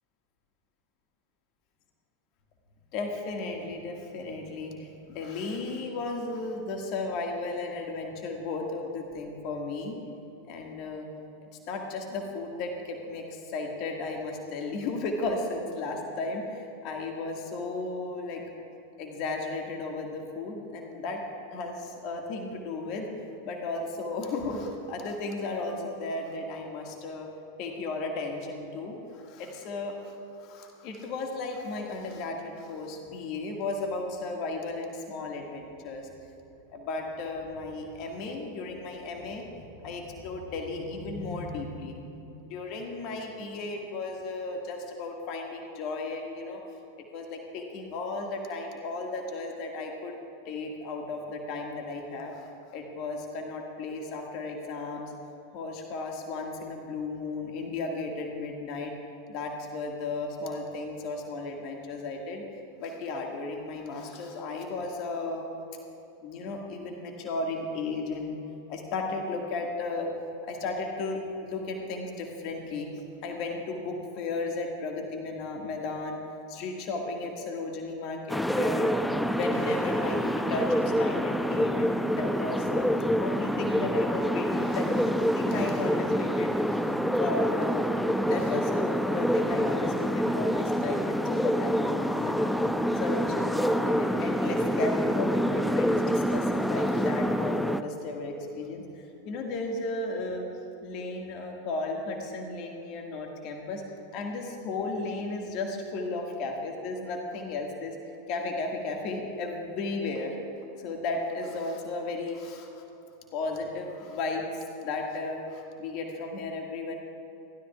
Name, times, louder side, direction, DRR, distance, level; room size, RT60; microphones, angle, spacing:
voice 1, 2.9-10.0 10.5-11.1 11.7-18.4 19.0-21.2 21.5-23.1 23.4-27.3 27.6-36.1 36.7-42.1 42.4-46.6 47.1-50.2 50.5-55.1 55.5-58.9 59.3-62.4 62.8-65.5 66.2-68.4 68.7-70.1 70.4-76.2 76.5-79.0 79.3-82.9 83.2-87.9 88.2-92.6 92.9-100.5 100.8-103.8 104.1-108.0 108.3-110.4 110.8-112.8 113.3-116.9, left 3 dB, 45° left, 1 dB, 1.8 m, -34 dB
sound 1, 78.3-97.8, equal, ahead, 0.6 m, -27 dB
29.5 x 13.5 x 2.4 m, 3.0 s
figure-of-eight pair, 90°, 0 cm